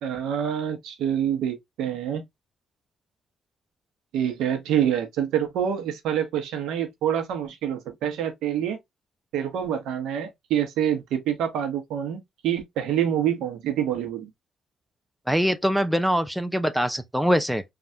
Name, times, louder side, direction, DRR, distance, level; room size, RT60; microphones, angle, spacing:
voice 1, 0.0-2.2 4.1-8.8 9.3-14.3, right 9 dB, 85° right, 0.8 m, -26 dB
voice 2, 15.3-17.6, equal, ahead, 0.5 m, -23 dB
3.3 x 2.4 x 2.6 m
cardioid pair, 90°, 0 cm